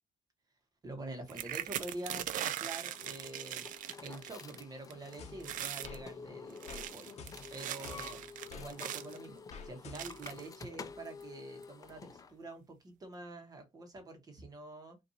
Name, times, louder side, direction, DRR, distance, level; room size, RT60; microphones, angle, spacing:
voice 1, 0.8-3.7 4.0-7.1 7.5-8.2 8.5-15.0, right 2 dB, 30° right, 1.1 m, -46 dB
sound 1, 1.3-4.6 4.9-5.1 5.4-6.0 6.5-9.2 9.9-10.5 11.2-11.3 11.6-11.9, right 11 dB, 80° right, 0.4 m, -40 dB
sound 2, 2.9-12.3, left 5 dB, 25° left, 0.4 m, -50 dB
sound 3, 5.2-6.0 6.7-6.9 7.2-8.7 9.5-10.3, left 4 dB, 55° left, 0.9 m, -49 dB
5.5 x 2.6 x 2.7 m
cardioid pair, 165°, 13 cm